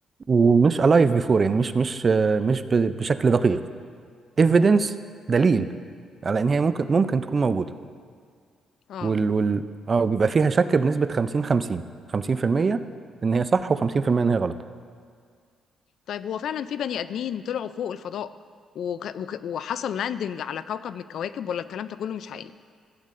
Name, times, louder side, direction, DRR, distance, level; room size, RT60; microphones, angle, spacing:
voice 1, 0.3-3.6 4.4-4.9 5.3-5.7 6.2-7.7 9.0-11.8 12.1-12.8 13.2-14.5, right 4 dB, 35° right, 12 dB, 0.4 m, -21 dB
voice 2, 8.9-9.2 16.1-18.3 18.8-22.5, left 9 dB, 70° left, 14 dB, 0.3 m, -31 dB
15.5 x 8.2 x 2.5 m, 2.1 s
cardioid pair, 90°, 0 cm